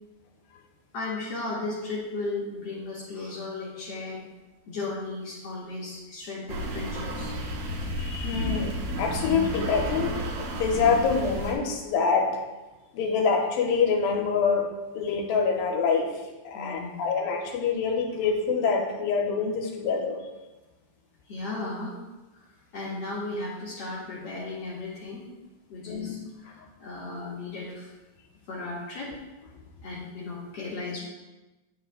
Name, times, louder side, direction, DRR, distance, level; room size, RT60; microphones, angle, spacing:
voice 1, 0.9-4.2 4.7-7.3 16.5-17.1 21.3-22.0 22.3-22.4 22.7-25.3 25.7-27.9 28.5-29.2 29.8-31.0, left 2 dB, 55° left, -6 dB, 2.0 m, -35 dB
sound 1, 6.5-11.5, equal, 80° right, 2.7 m, -32 dB
voice 2, 8.0-12.4 12.9-14.7 14.9-16.1 16.5-20.2 25.9-26.2, left 5 dB, 85° left, 1 dB, 2.6 m, -26 dB
9.3 x 8.0 x 2.2 m, 1.1 s
omnidirectional pair, 4.0 m